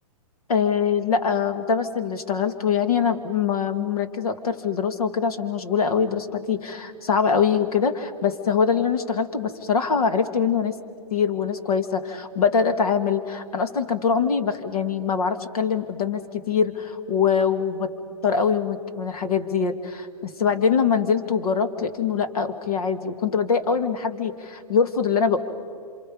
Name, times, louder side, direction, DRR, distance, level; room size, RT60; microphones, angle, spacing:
voice 1, 0.5-10.8 11.1-17.9 18.2-25.4, left 6 dB, 75° left, 9 dB, 2.3 m, -23 dB
27.5 x 27.0 x 5.4 m, 2.3 s
hypercardioid pair, 150°, 19 cm